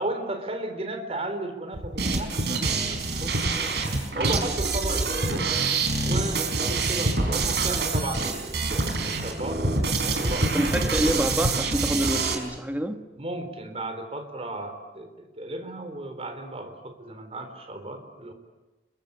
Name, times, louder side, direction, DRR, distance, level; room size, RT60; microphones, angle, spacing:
voice 1, 0.0-3.8 4.1-5.5 6.0-9.6 10.1-11.3 13.2-18.3, right 2 dB, 35° right, 4.0 m, -35 dB
sound 1, 1.7-11.5, equal, 85° right, 3.5 m, -32 dB
sound 2, 2.0-12.3, right 4 dB, 65° right, 5.1 m, -27 dB
voice 2, 10.5-13.0, right 1 dB, 10° right, 1.5 m, -27 dB
30.0 x 23.0 x 8.7 m
head